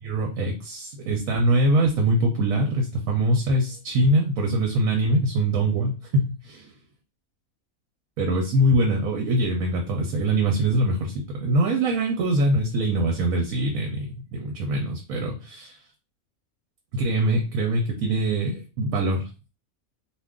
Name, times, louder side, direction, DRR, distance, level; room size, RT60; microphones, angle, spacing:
voice 1, 0.0-6.7 8.2-15.8 16.9-19.3, right 1 dB, 75° right, 2 dB, 1.0 m, -23 dB
2.6 x 2.4 x 3.5 m, 0.31 s
omnidirectional pair, 1.5 m